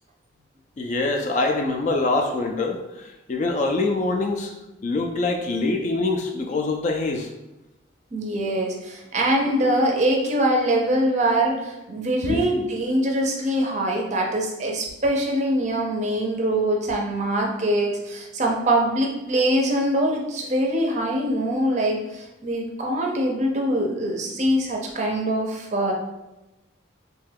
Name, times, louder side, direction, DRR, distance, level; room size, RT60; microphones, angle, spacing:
voice 1, 0.8-2.8 3.3-4.5 4.8-7.3 12.3-12.4, left 2 dB, 40° left, 3 dB, 0.3 m, -24 dB
voice 2, 8.1-25.9, right 1 dB, 35° right, 0 dB, 0.5 m, -23 dB
3.1 x 2.2 x 3.3 m, 1.0 s
head